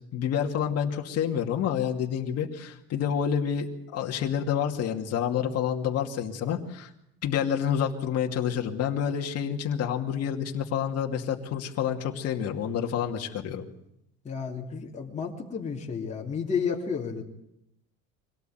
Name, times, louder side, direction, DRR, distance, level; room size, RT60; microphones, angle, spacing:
voice 1, 0.1-6.9 7.2-13.6, left 8 dB, 45° left, 2 dB, 2.5 m, -28 dB
voice 2, 14.2-17.2, left 6 dB, 20° left, -1 dB, 3.0 m, -31 dB
24.5 x 18.0 x 9.3 m, 0.79 s
cardioid pair, 145°, 34 cm